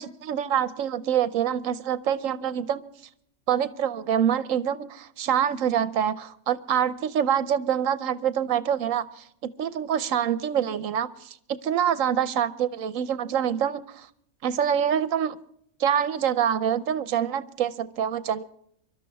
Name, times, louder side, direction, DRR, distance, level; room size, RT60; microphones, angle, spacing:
voice 1, 0.0-2.8 3.5-9.2 9.6-14.1 14.4-15.4 15.8-18.4, right 9 dB, 70° right, 15 dB, 1.2 m, -26 dB
24.5 x 12.5 x 3.5 m, 0.70 s
omnidirectional pair, 1.4 m